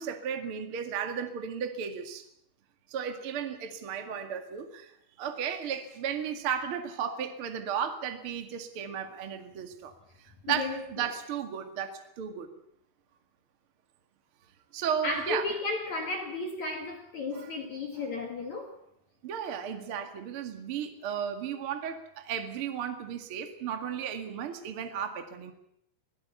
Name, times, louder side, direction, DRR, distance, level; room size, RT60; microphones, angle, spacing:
voice 1, 0.0-2.2 2.9-4.9 5.2-9.9 10.2-12.5 14.7-15.4 17.3-17.5 19.2-25.5, right 8 dB, 75° right, 5 dB, 1.2 m, -34 dB
voice 2, 10.5-11.1 15.0-18.8, left 3 dB, 55° left, 3 dB, 2.1 m, -34 dB
24.5 x 17.0 x 7.0 m, 0.74 s
omnidirectional pair, 5.9 m